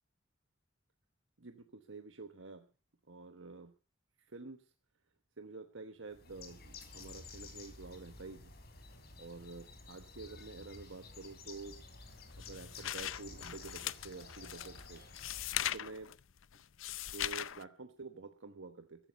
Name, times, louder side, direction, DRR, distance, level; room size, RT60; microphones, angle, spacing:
voice 1, 1.4-2.7 3.1-3.7 4.3-4.6 5.4-8.5 9.2-11.8 12.4-15.0 15.6-16.1 17.1-19.1, right 3 dB, 70° right, 8 dB, 1.2 m, -49 dB
Bird, 6.1-15.7, left 3 dB, 55° left, 3.8 m, -52 dB
sound 1, 12.0-17.6, left 12 dB, 75° left, 0.6 m, -40 dB
15.0 x 12.5 x 5.3 m, 0.34 s
head